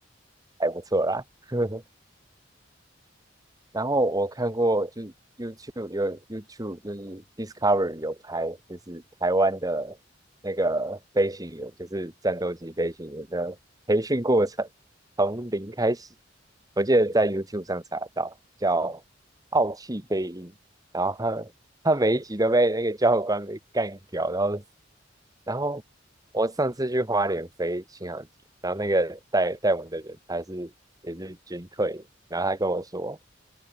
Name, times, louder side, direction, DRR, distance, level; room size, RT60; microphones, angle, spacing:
voice 1, 0.6-1.2 1.5-1.8 3.7-5.1 5.4-10.0 10.4-13.6 13.9-14.7 15.2-16.1 16.8-18.3 18.6-19.0 19.5-20.5 20.9-21.5 21.8-24.6 25.5-25.8 26.3-28.3 28.6-30.7 31.0-32.0 32.3-33.2, right 2 dB, 20° right, 1.9 m, -26 dB
open air
head